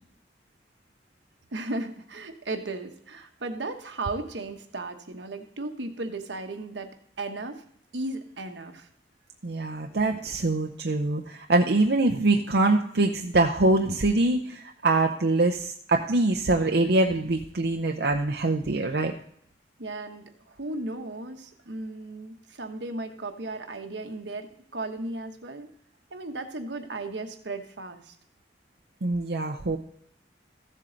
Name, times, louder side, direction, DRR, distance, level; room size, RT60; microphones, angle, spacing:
voice 1, 1.5-6.9 7.2-7.6 7.9-8.9 19.8-25.7 26.1-28.1, right 2 dB, 85° right, 5 dB, 1.2 m, -35 dB
voice 2, 9.4-19.1 29.0-29.8, right 2 dB, 65° right, 3 dB, 0.7 m, -24 dB
14.5 x 7.6 x 3.9 m, 0.68 s
head